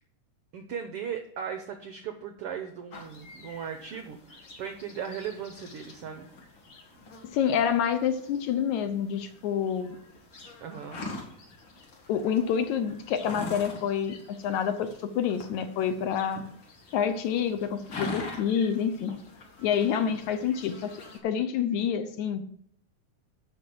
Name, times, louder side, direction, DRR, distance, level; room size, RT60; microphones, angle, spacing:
voice 1, 0.5-6.3 10.6-11.0, right 7 dB, 85° right, 6 dB, 1.3 m, -37 dB
sound 1, 2.9-21.2, left 2 dB, 45° left, 2.2 m, -44 dB
voice 2, 7.2-10.0 12.1-16.4 16.9-19.1 19.6-22.4, left 8 dB, 70° left, 9 dB, 2.0 m, -28 dB
9.0 x 5.9 x 7.7 m, 0.69 s
omnidirectional pair, 3.7 m